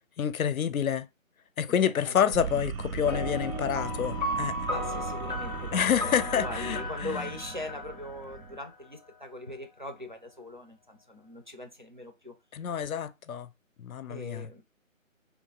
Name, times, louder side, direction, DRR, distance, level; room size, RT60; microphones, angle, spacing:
voice 1, 0.2-1.1 1.6-4.5 5.7-6.8 12.5-13.5 13.8-14.5, left 8 dB, 85° left, 0.5 m, -28 dB
voice 2, 1.7-2.4 4.7-12.4 14.1-14.6, left 1 dB, 40° right, 0.4 m, -41 dB
sound 1, 2.3-8.6, right 6 dB, 80° right, 0.8 m, -38 dB
sound 2, 3.1-8.8, left 1 dB, 35° left, 0.5 m, -35 dB
3.1 x 2.4 x 3.9 m
figure-of-eight pair, 170°, 41 cm